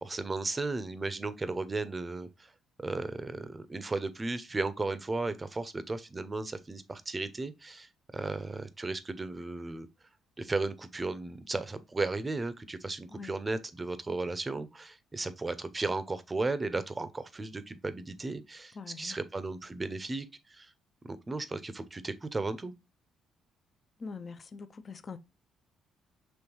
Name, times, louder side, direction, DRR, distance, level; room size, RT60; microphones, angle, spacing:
voice 1, 0.0-2.5 2.8-9.9 10.4-20.7 21.0-22.7, right 3 dB, 20° right, 0.6 m, -35 dB
voice 2, 18.8-19.2 24.0-25.2, left 5 dB, 40° left, 0.5 m, -43 dB
5.3 x 3.2 x 3.0 m
cardioid pair, 90°, 0 cm